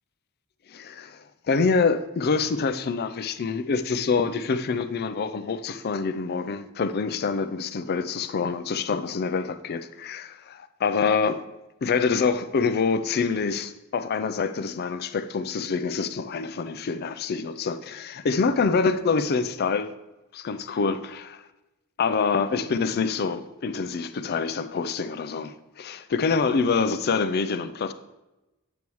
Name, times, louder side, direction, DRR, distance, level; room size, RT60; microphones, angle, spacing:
voice 1, 0.7-11.4 11.8-19.9 20.3-21.4 22.0-27.9, left 5 dB, 50° left, 0.4 m, -26 dB
8.1 x 7.0 x 3.1 m
head